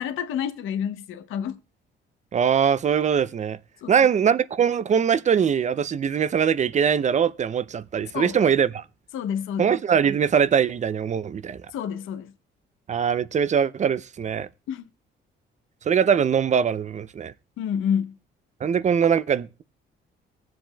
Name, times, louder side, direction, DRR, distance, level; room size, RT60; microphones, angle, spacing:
voice 1, 0.0-1.6 3.8-4.1 8.1-8.4 9.1-9.8 11.7-12.3 14.7-14.9 17.6-18.2, left 8 dB, 85° left, 0.8 m, -29 dB
voice 2, 2.3-3.6 3.9-8.8 9.6-11.6 12.9-14.5 15.9-17.3 18.6-19.6, right 7 dB, 35° right, 0.4 m, -22 dB
22.5 x 7.7 x 2.2 m
cardioid pair, 90°, 20 cm